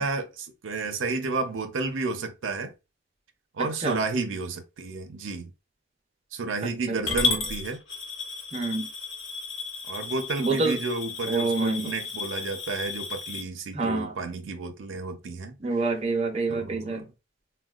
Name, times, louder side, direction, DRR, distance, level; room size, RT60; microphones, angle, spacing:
voice 1, 0.0-2.7 3.5-5.5 6.3-7.8 9.9-15.6 16.5-17.1, right 3 dB, 80° right, 0.5 m, -31 dB
voice 2, 3.6-4.0 6.9-7.0 7.3-7.4 8.5-8.9 10.4-10.8 11.3-11.9 13.7-14.1 15.6-17.0, right 3 dB, 30° right, 0.6 m, -27 dB
Coin (dropping) / Glass, 7.1-13.4, left 5 dB, 70° left, 1.0 m, -33 dB
3.6 x 2.2 x 2.3 m
head